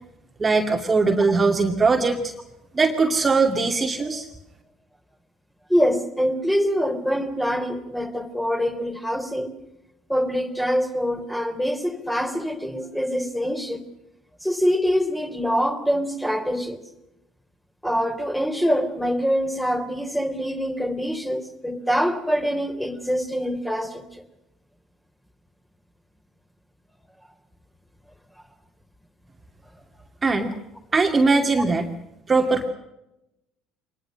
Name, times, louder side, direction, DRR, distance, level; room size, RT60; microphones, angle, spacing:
voice 1, 0.4-2.3 2.7-4.3 30.2-30.5 30.9-31.9 32.3-32.7, right 3 dB, 25° right, 3 dB, 2.4 m, -20 dB
voice 2, 5.7-9.5 10.1-13.8 14.4-16.8 17.8-24.2, equal, 5° left, 6 dB, 3.5 m, -24 dB
25.0 x 20.5 x 6.4 m, 0.89 s
figure-of-eight pair, 60°, 0 cm